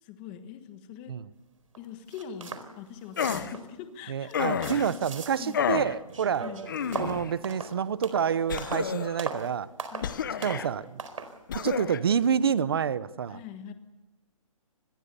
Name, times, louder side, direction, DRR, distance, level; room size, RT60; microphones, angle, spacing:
voice 1, 0.0-1.2 1.8-4.4 4.6-5.0 5.4-5.6 6.4-6.6 9.9-11.3 13.3-13.7, left 8 dB, 15° left, 9 dB, 1.3 m, -43 dB
sound 1, 1.7-1.8 2.1-2.7 3.0-3.7 4.2-5.8 6.1-8.9 9.2-9.5 9.8-10.1 10.4-10.7 11.0-11.3, right 5 dB, 65° right, 4.3 m, -38 dB
sound 2, 3.2-3.5 4.3-4.9 5.5-6.0 6.7-7.3 8.5-9.2 10.0-10.7 11.5-12.0, left 8 dB, 35° left, 1.0 m, -30 dB
voice 2, 4.1-6.5 7.0-9.7 10.4-10.9 11.5-13.4, right 7 dB, 40° right, 17 dB, 0.9 m, -28 dB
26.5 x 21.5 x 6.9 m, 1.1 s
hypercardioid pair, 175°, 18 cm